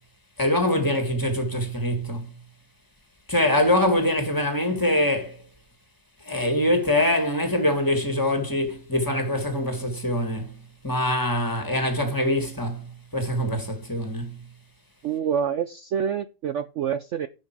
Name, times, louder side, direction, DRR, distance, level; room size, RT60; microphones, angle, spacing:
voice 1, 0.4-2.3 3.3-5.4 6.2-14.4, left 1 dB, 10° left, 2.0 m, -24 dB
voice 2, 15.0-17.3, right 8 dB, 75° right, 0.6 m, -27 dB
10.5 x 5.9 x 4.7 m
omnidirectional pair, 2.0 m